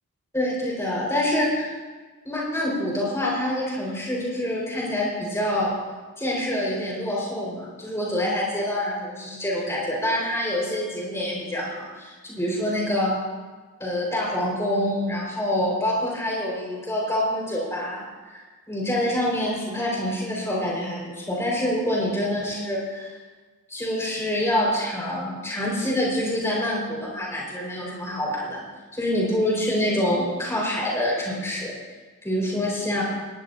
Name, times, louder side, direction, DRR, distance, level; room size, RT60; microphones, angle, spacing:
voice 1, 0.3-1.7 2.2-5.8 6.2-13.1 13.8-18.0 18.3-23.1 23.7-28.6 28.9-31.8 32.2-33.0, left 1 dB, 10° left, -4 dB, 5.6 m, -26 dB
19.0 x 17.5 x 2.9 m, 1.4 s
head